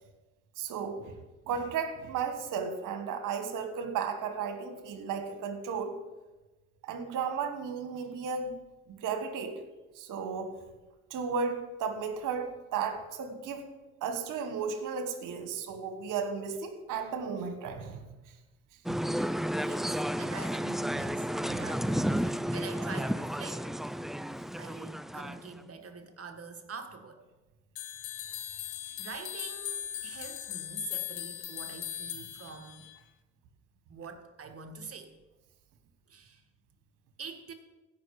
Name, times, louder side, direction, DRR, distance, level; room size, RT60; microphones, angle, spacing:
voice 1, 0.6-1.1 1.5-6.0 6.8-8.5 8.9-9.6 9.9-10.5 11.1-13.6 14.0-18.0 21.4-21.7, right 6 dB, 70° right, 7 dB, 1.6 m, -34 dB
sound 1, 18.9-25.6, equal, ahead, 0.3 m, -32 dB
voice 2, 19.6-23.7 24.6-27.2 28.2-28.4 29.0-32.8 33.9-35.1 36.1-36.4 37.2-37.5, right 5 dB, 45° right, 5 dB, 1.8 m, -45 dB
sound 2, 27.8-33.0, left 11 dB, 80° left, 0.9 m, -39 dB
16.5 x 5.5 x 4.9 m, 1.1 s
hypercardioid pair, 50°, 32 cm